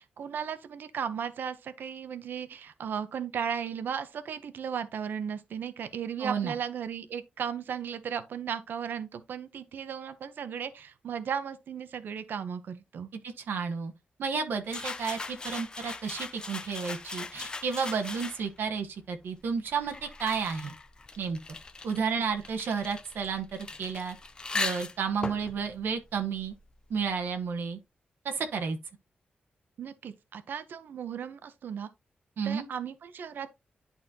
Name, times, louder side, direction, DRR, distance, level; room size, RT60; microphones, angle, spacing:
voice 1, 0.0-13.1 21.9-22.0 29.8-31.9 32.4-33.5, right 7 dB, 70° right, 0.8 m, -36 dB
voice 2, 6.2-6.5 13.2-13.9 14.2-20.7 21.2-21.4 21.8-24.1 24.5-26.5 26.9-27.8 28.2-28.8 32.4-32.7, right 6 dB, 85° right, 1.3 m, -32 dB
sound 1, 14.7-18.7 19.4-26.9, left 3 dB, 25° left, 0.5 m, -39 dB
11.0 x 4.2 x 2.8 m
wide cardioid pair, 160°, 4 cm